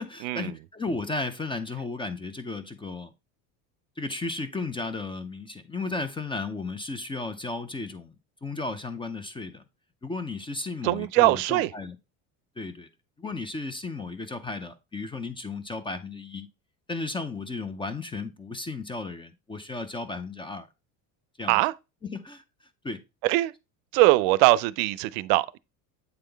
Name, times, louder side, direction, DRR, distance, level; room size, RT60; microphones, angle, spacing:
voice 1, 0.0-3.1 4.0-8.1 8.4-9.6 10.0-12.0 12.6-12.9 13.2-16.5 16.9-20.7 21.4-21.6 22.0-22.4 22.8-23.0, left 3 dB, 15° left, 0.4 m, -34 dB
voice 2, 10.8-11.7 21.5-21.7 23.2-23.5 23.9-25.6, right 18 dB, 80° right, 0.5 m, -21 dB
7.9 x 3.7 x 3.3 m
supercardioid pair, 110°, 42 cm